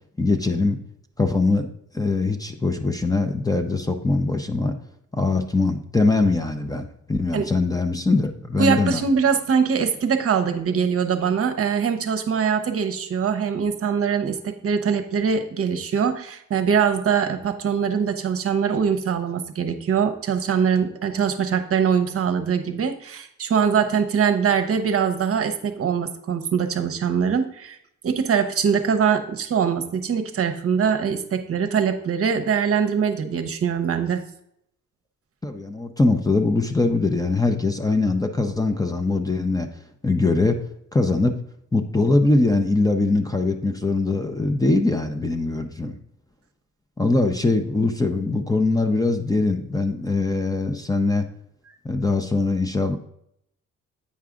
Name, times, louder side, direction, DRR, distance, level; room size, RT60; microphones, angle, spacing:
voice 1, 0.2-0.8 1.2-1.7 1.9-4.7 5.2-9.0 35.4-39.7 40.0-40.6 40.9-41.3 41.7-46.0 47.0-51.3 51.8-53.0, left 3 dB, 10° left, 6 dB, 0.6 m, -22 dB
voice 2, 8.6-27.8 28.0-34.2, right 7 dB, 50° right, 7 dB, 0.8 m, -22 dB
8.6 x 4.7 x 3.7 m, 0.73 s
cardioid pair, 90°, 30 cm